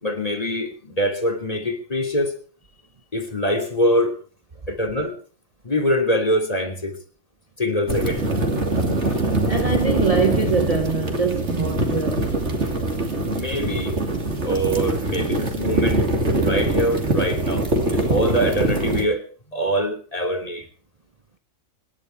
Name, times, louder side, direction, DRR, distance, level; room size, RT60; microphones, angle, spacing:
voice 1, 0.0-2.4 3.1-4.1 4.7-5.2 5.6-7.0 7.6-8.3 13.3-14.0 14.4-16.0 16.4-19.2 19.5-20.7, equal, 30° left, 3.0 m, -24 dB
sound 1, 7.9-19.1, right 2 dB, 55° right, 3.0 m, -23 dB
voice 2, 9.5-12.3, right 4 dB, 30° right, 0.8 m, -23 dB
26.0 x 11.0 x 4.5 m
omnidirectional pair, 1.4 m